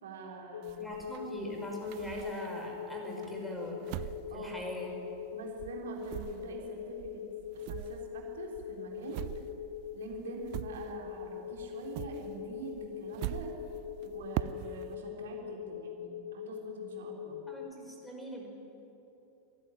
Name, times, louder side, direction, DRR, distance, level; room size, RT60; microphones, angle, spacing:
voice 1, 0.0-0.9 4.3-4.6 5.3-7.2 7.7-9.2 9.9-13.5 14.0-17.4, right 5 dB, 60° right, 0 dB, 3.7 m, -45 dB
sound 1, 0.5-17.7, left 9 dB, 65° left, 0.9 m, -42 dB
sound 2, 0.6-2.8 3.2-5.3 5.6-11.3 11.6-14.9, right 16 dB, 45° right, 0.5 m, -42 dB
voice 2, 0.8-4.9 17.5-18.5, equal, 5° left, 0 dB, 5.8 m, -41 dB
23.5 x 16.0 x 10.0 m, 2.9 s
figure-of-eight pair, 90°, 0 cm